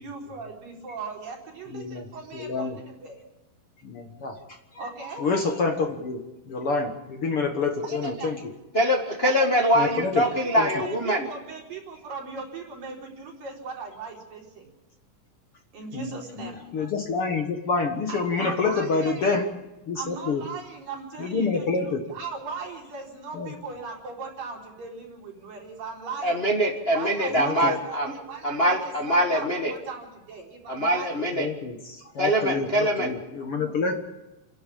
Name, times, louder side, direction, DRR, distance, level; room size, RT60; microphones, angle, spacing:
voice 1, 0.0-3.2 4.8-5.3 7.8-8.5 9.2-14.7 15.7-16.6 18.1-19.5 20.0-26.5 26.9-31.3, right 5 dB, 75° right, -1 dB, 5.9 m, -38 dB
voice 2, 1.7-2.0 2.3-2.7 3.8-4.3 5.2-6.2 6.5-8.3 9.8-10.2 10.6-10.7 15.9-16.1 16.4-19.4 19.9-20.4 21.2-22.0 23.4-23.5 27.4-27.7 31.4-31.8 32.2-33.9, left 4 dB, 50° left, 4 dB, 1.9 m, -27 dB
voice 3, 8.7-11.3 26.2-28.1 28.4-29.7 30.7-31.5 32.2-33.1, equal, 30° left, 1 dB, 1.0 m, -23 dB
29.5 x 11.0 x 8.6 m, 1.0 s
omnidirectional pair, 4.0 m